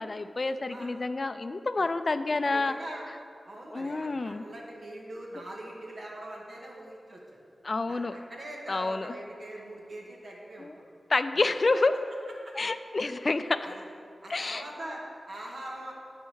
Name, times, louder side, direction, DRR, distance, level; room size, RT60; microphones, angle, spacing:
voice 1, 0.0-2.7 3.7-4.4 7.6-8.2 8.7-9.1 10.6-10.7 11.1-11.9 12.6-13.7 14.3-14.6, left 3 dB, 50° left, 11 dB, 0.4 m, -28 dB
voice 2, 2.3-3.1 3.4-7.4 7.9-10.8 11.3-11.4 11.7-11.8 12.4-12.5 13.6-13.8 14.2-15.9, right 1 dB, 70° right, -3 dB, 1.9 m, -42 dB
10.0 x 4.3 x 6.3 m, 2.3 s
cardioid pair, 45°, 0 cm